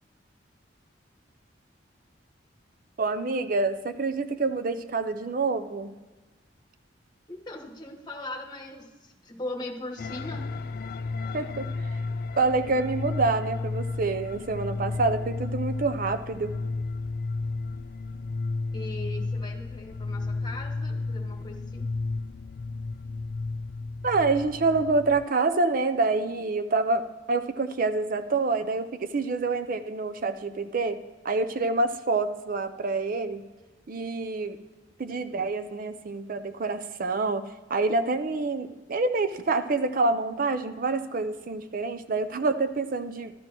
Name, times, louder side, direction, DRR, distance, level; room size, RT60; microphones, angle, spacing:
voice 1, 3.0-5.9 11.3-11.7 12.4-16.5 24.0-31.0 31.2-33.4 33.9-34.6 35.0-43.3, right 3 dB, 45° right, 10 dB, 0.5 m, -27 dB
voice 2, 7.3-10.5 18.7-21.9, left 1 dB, 20° left, -1 dB, 1.3 m, -39 dB
sound 1, 10.0-25.2, left 3 dB, 50° left, 0.3 m, -33 dB
13.0 x 12.5 x 3.0 m, 1.2 s
head